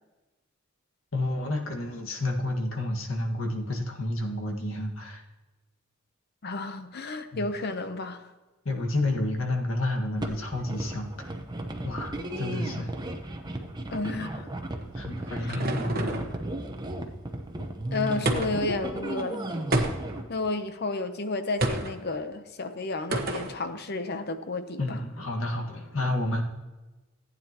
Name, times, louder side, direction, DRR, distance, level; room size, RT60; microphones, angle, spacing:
voice 1, 1.1-5.2 7.3-7.5 8.7-11.1 11.8-12.9 14.9-16.2 24.8-26.4, left 1 dB, 70° left, 2 dB, 1.8 m, -30 dB
voice 2, 6.4-8.3 13.9-14.5 15.4-15.6 17.9-19.4 20.3-25.0, left 3 dB, 50° left, 9 dB, 0.9 m, -32 dB
sound 1, 10.2-20.2, right 1 dB, 20° right, 0.9 m, -35 dB
sound 2, 14.8-16.4 18.3-18.7 19.7-20.3 21.6-22.0 23.1-23.6, right 1 dB, 50° right, 1.2 m, -28 dB
15.0 x 9.3 x 3.0 m, 1.1 s
head